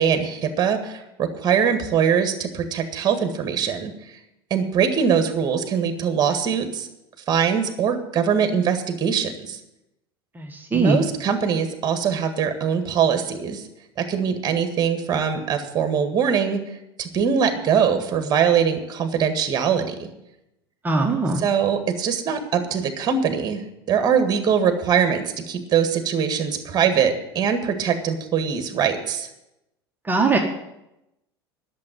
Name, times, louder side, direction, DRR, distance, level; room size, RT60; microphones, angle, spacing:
voice 1, 0.0-4.1 4.5-6.9 7.3-9.6 10.7-13.6 14.0-16.6 17.0-20.1 21.3-23.6 23.9-29.3, right 7 dB, 30° right, 7 dB, 1.7 m, -22 dB
voice 2, 10.4-11.0 20.8-21.4 30.1-30.4, right 3 dB, 15° right, 1 dB, 1.4 m, -20 dB
11.5 x 6.8 x 9.3 m, 0.88 s
figure-of-eight pair, 80°, 13 cm